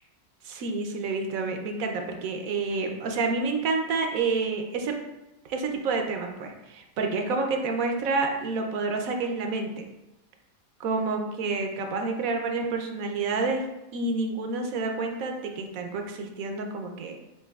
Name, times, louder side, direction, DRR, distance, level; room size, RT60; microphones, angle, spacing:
voice 1, 0.4-5.0 5.5-9.9 10.8-13.6 13.9-17.2, right 3 dB, 75° right, 4 dB, 1.1 m, -29 dB
7.5 x 2.7 x 2.3 m, 0.96 s
omnidirectional pair, 1.5 m